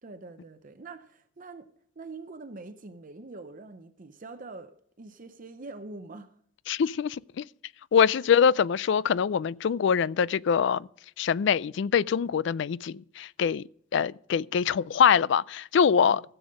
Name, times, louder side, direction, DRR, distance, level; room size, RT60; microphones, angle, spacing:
voice 1, 0.0-6.4 16.0-16.2, right 3 dB, 40° right, 0.6 m, -44 dB
voice 2, 6.7-7.5 7.9-10.9 11.2-13.6 13.9-16.2, left 7 dB, 65° left, 0.3 m, -24 dB
16.0 x 7.0 x 5.2 m
head